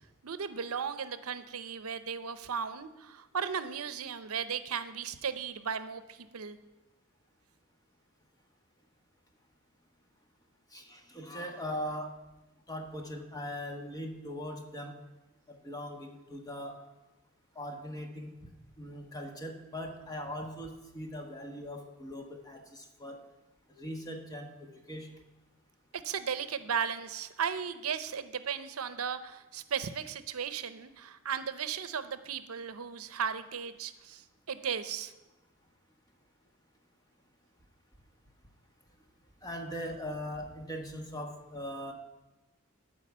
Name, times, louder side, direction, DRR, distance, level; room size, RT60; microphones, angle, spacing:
voice 1, 0.2-6.6 25.9-35.1, right 7 dB, 90° right, 12 dB, 0.7 m, -36 dB
voice 2, 10.7-12.1 12.7-15.0 15.5-16.8 17.5-18.3 18.8-23.2 23.7-25.1 39.4-41.9, equal, 15° left, 3 dB, 1.4 m, -40 dB
13.0 x 4.8 x 7.3 m, 1.1 s
head